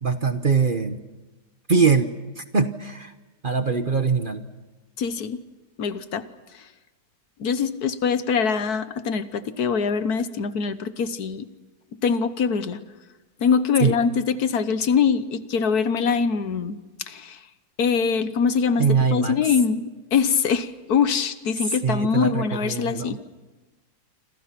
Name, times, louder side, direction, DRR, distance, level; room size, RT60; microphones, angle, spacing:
voice 1, 0.0-1.0 1.7-3.1 3.4-4.4 13.8-14.0 18.8-19.3 21.7-23.2, right 5 dB, 35° right, 9 dB, 1.0 m, -22 dB
voice 2, 5.0-5.4 5.8-6.3 7.4-11.4 12.0-12.8 13.4-16.8 17.1-17.4 17.8-23.2, left 6 dB, 70° left, 12 dB, 1.5 m, -23 dB
28.5 x 26.0 x 6.0 m, 1.2 s
omnidirectional pair, 1.8 m